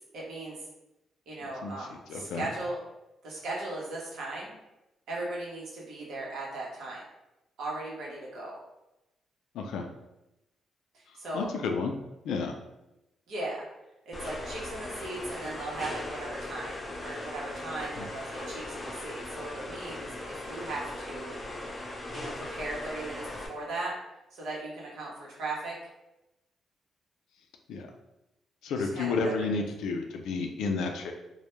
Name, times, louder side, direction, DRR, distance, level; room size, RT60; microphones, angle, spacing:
voice 1, 0.1-0.6 1.3-2.8 3.2-4.6 5.1-7.0 7.6-8.6 10.9-11.5 13.3-13.6 14.1-21.4 22.1-23.9 24.3-25.8 28.8-29.5, right 2 dB, 80° right, -4 dB, 0.8 m, -38 dB
voice 2, 2.1-2.5 9.5-9.9 11.3-11.9 12.2-12.5 18.0-18.1 27.7-27.9 28.6-31.1, left 4 dB, 85° left, 3 dB, 0.3 m, -31 dB
sound 1, 14.1-23.5, left 1 dB, 30° left, 0.5 m, -39 dB
2.1 x 2.1 x 2.9 m, 0.93 s
cardioid pair, 80°, 0 cm